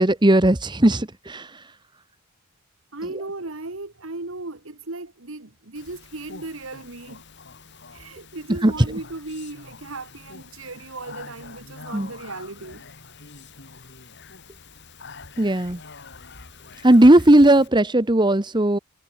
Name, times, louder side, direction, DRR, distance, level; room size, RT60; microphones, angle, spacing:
voice 1, 0.0-1.6 8.6-8.7 11.9-12.1 15.4-15.8 16.8-18.8, right 1 dB, 20° right, 1.1 m, -16 dB
voice 2, 2.9-7.2 7.9-12.8 13.8-13.9, right 2 dB, 65° right, 1.8 m, -36 dB
Speech, 5.7-17.7, left 4 dB, 55° left, 3.4 m, -45 dB
head